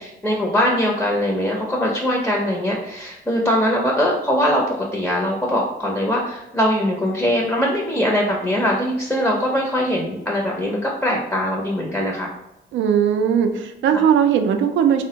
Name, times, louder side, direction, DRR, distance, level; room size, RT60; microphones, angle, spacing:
voice 1, 0.0-12.3 13.9-14.0, equal, 5° left, -1 dB, 0.5 m, -21 dB
voice 2, 12.7-15.0, right 8 dB, 75° right, 7 dB, 0.4 m, -18 dB
3.4 x 2.0 x 2.7 m, 0.89 s
cardioid pair, 90°, 20 cm